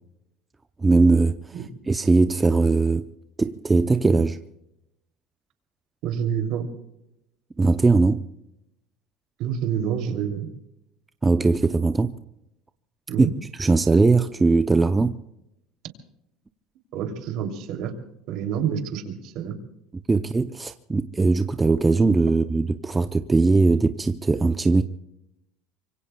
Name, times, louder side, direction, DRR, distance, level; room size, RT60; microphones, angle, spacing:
voice 1, 0.8-1.4 1.9-3.1 3.4-4.4 7.6-8.2 11.2-12.1 13.2-13.3 13.5-15.2 20.1-24.8, right 3 dB, 15° right, 0.6 m, -20 dB
voice 2, 6.0-6.6 9.4-10.5 13.1-13.3 16.9-17.9 18.3-19.5, right 8 dB, 55° right, 2.9 m, -27 dB
25.5 x 23.5 x 2.3 m
cardioid pair, 140°, 0 cm